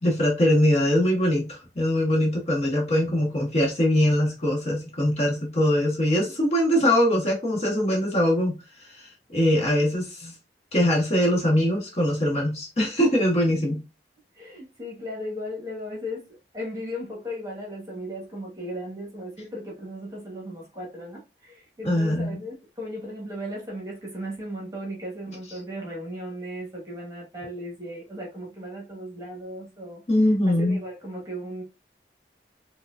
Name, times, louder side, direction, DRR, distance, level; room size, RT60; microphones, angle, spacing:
voice 1, 0.0-8.5 8.8-10.3 10.7-13.8 21.8-22.4 30.1-30.8, left 1 dB, 35° left, 1.1 m, -22 dB
voice 2, 14.4-16.2 16.5-30.0 30.5-31.6, equal, 20° right, 1.2 m, -36 dB
4.5 x 2.3 x 2.4 m
head